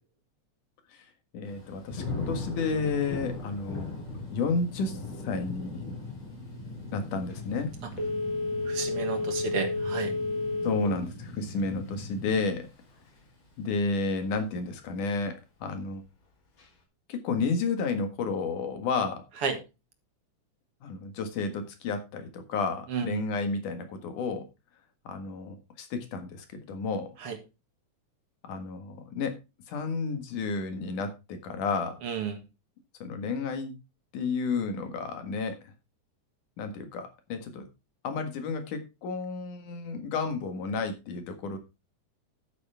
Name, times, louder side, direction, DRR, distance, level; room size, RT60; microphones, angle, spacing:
voice 1, 1.3-3.9 4.3-6.0 6.9-7.7 10.6-12.7 13.6-16.0 17.1-19.2 20.8-24.4 25.0-27.1 28.4-29.4 29.7-32.0 33.0-33.7 34.1-35.5 36.6-37.6 38.0-41.6, left 4 dB, 90° left, 7 dB, 3.3 m, -31 dB
Thunder / Rain, 1.4-12.4 12.8-13.3, left 3 dB, 60° left, 7.8 m, -41 dB
sound 1, 3.8-12.4, left 2 dB, 30° right, 3.5 m, -42 dB
Telephone, 7.9-11.0 11.4-11.5, left 2 dB, 40° left, 3.1 m, -30 dB
voice 2, 8.7-10.2 19.4-19.6 22.9-23.2 27.2-27.4 32.0-32.4, right 6 dB, 55° right, 7 dB, 2.3 m, -32 dB
11.5 x 9.2 x 3.5 m, 0.26 s
omnidirectional pair, 3.5 m